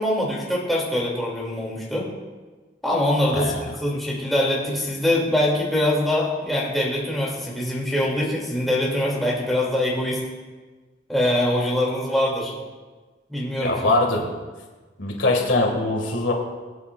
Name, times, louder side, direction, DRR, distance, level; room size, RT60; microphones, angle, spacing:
voice 1, 0.0-2.1 2.8-3.5 3.8-10.2 11.1-12.5 13.3-13.9, left 1 dB, ahead, -6 dB, 2.5 m, -23 dB
voice 2, 13.6-14.3 15.0-16.3, left 2 dB, 85° left, 1 dB, 2.0 m, -22 dB
23.0 x 8.5 x 2.4 m, 1.3 s
head